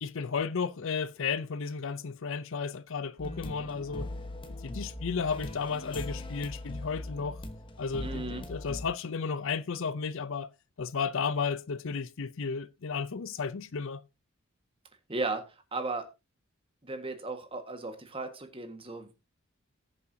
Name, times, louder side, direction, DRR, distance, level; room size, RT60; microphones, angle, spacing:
voice 1, 0.0-4.1 4.5-7.4 7.8-10.5 10.8-14.0, left 5 dB, 60° left, 0.5 m, -33 dB
sound 1, 3.2-8.9, left 1 dB, 25° left, 1.1 m, -40 dB
voice 2, 8.0-8.4 15.1-15.4 15.7-16.1 16.8-19.1, right 3 dB, 25° right, 1.5 m, -35 dB
19.0 x 6.8 x 2.7 m
head